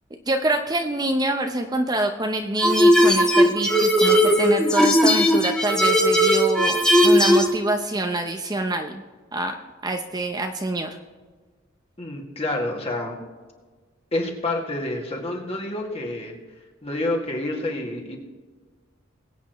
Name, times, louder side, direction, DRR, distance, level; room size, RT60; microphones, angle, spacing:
voice 1, 0.3-6.8 7.0-8.9 9.3-9.5 9.8-10.9, right 2 dB, 20° right, 4 dB, 0.7 m, -25 dB
sound 1, 2.6-7.5, equal, 5° left, 1.4 m, -17 dB
voice 2, 12.0-13.2 14.1-16.4 16.8-18.2, left 1 dB, 30° left, -1 dB, 2.2 m, -28 dB
22.5 x 8.7 x 3.1 m, 1.4 s
head